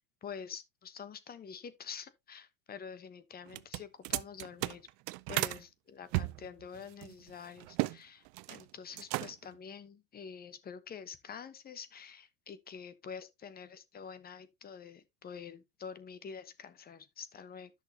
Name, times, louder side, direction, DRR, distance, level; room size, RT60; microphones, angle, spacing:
voice 1, 0.0-4.9 5.3-17.7, left 6 dB, 25° left, 1.0 m, -47 dB
sound 1, 3.5-5.6 6.1-8.0 8.3-8.6 8.9-9.6, right 22 dB, 50° right, 0.5 m, -35 dB
11.0 x 6.2 x 2.8 m
supercardioid pair, 115°, 39 cm